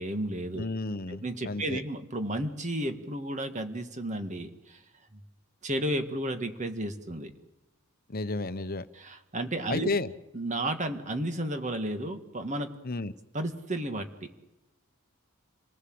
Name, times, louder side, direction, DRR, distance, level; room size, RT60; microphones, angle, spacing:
voice 1, 0.0-0.7 1.1-4.8 5.1-5.2 5.6-7.3 8.9-9.9 10.3-12.7 13.3-14.1, right 1 dB, 30° right, 7 dB, 1.9 m, -32 dB
voice 2, 0.6-1.8 8.1-8.9 9.7-10.1 12.8-13.1, left 3 dB, 40° left, 12 dB, 1.0 m, -32 dB
28.0 x 18.5 x 7.9 m, 1.0 s
head